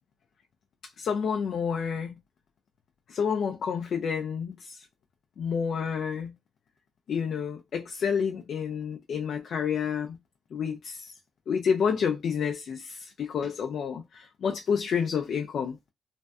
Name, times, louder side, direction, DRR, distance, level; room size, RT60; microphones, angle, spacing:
voice 1, 1.0-2.2 3.1-4.8 5.4-6.3 7.1-10.2 10.5-11.1 11.5-15.8, left 6 dB, 60° left, 0.3 m, -29 dB
2.5 x 2.1 x 2.3 m
cardioid pair, 90°, 0 cm